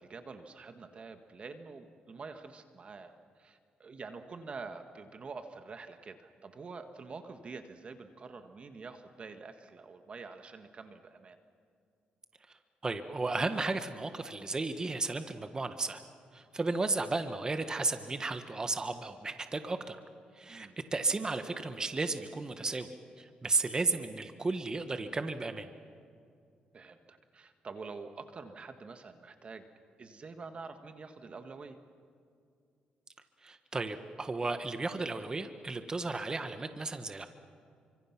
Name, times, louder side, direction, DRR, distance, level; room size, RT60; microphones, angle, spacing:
voice 1, 0.0-11.4 20.5-20.8 26.7-29.6 30.0-31.8, right 4 dB, 40° right, 7 dB, 1.6 m, -47 dB
voice 2, 12.8-16.0 16.3-20.0 20.3-22.9 23.2-25.7 33.4-37.3, right 3 dB, 25° right, 8 dB, 1.4 m, -34 dB
29.5 x 25.5 x 6.0 m, 2.4 s
cardioid pair, 100°, 3 cm